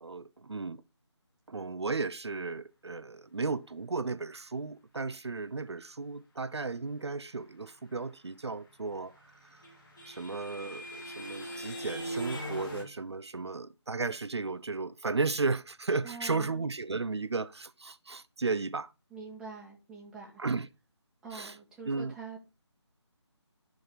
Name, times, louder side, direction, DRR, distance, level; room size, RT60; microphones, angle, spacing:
voice 1, 0.0-0.8 1.5-9.6 10.0-18.9 20.4-20.7 21.3-21.6 21.8-22.1, right 4 dB, 65° right, 0.8 m, -34 dB
sound 1, 9.0-12.8, equal, 45° left, 4.7 m, -40 dB
voice 2, 16.0-16.5 19.1-20.4 21.2-22.4, right 4 dB, 5° right, 2.0 m, -45 dB
12.5 x 6.5 x 5.2 m
figure-of-eight pair, 160°, 15 cm